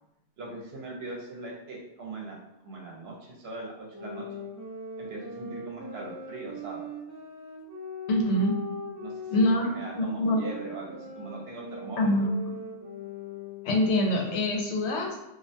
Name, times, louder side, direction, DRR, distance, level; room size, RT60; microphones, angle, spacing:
voice 1, 0.4-2.4 2.6-4.2 5.0-6.9 9.0-12.1, right 2 dB, 70° right, -2 dB, 0.9 m, -40 dB
sound 1, 3.9-13.9, left 1 dB, 25° right, 0.4 m, -41 dB
voice 2, 8.1-8.5 9.3-10.4 12.0-12.3 13.6-15.1, left 1 dB, 80° left, 0 dB, 0.9 m, -25 dB
2.4 x 2.1 x 2.6 m, 0.96 s
omnidirectional pair, 1.1 m